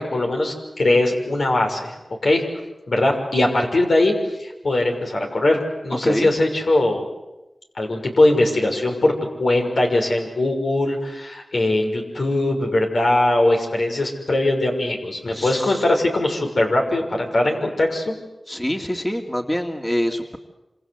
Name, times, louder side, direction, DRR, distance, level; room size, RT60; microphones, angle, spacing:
voice 1, 0.0-1.9 2.2-2.4 2.9-4.1 4.4-7.0 7.8-9.1 9.4-18.1, left 2 dB, 75° left, 2 dB, 6.3 m, -20 dB
voice 2, 15.3-15.8 18.5-20.4, equal, 15° left, 3 dB, 2.6 m, -25 dB
27.0 x 27.0 x 8.1 m, 1.0 s
wide cardioid pair, 55°, 0 cm